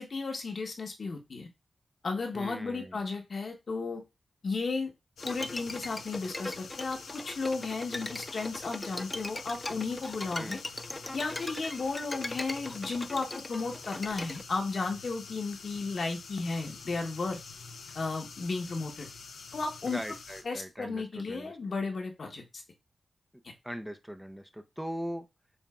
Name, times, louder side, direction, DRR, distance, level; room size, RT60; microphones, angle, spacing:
voice 1, 0.0-1.5 2.0-4.0 4.4-4.9 5.2-7.0 7.2-10.6 11.1-17.4 17.9-19.1 19.5-20.0 20.4-22.6, left 4 dB, 65° left, 3 dB, 1.3 m, -34 dB
voice 2, 2.3-3.1 10.3-10.6 19.9-21.5 23.6-25.3, equal, 5° right, 7 dB, 0.7 m, -40 dB
sound 1, 5.2-20.4, left 5 dB, 90° left, 0.8 m, -47 dB
Bowed string instrument, 5.2-14.4, left 2 dB, 25° left, 0.4 m, -40 dB
7.2 x 2.8 x 2.4 m, 0.24 s
cardioid pair, 45°, 0 cm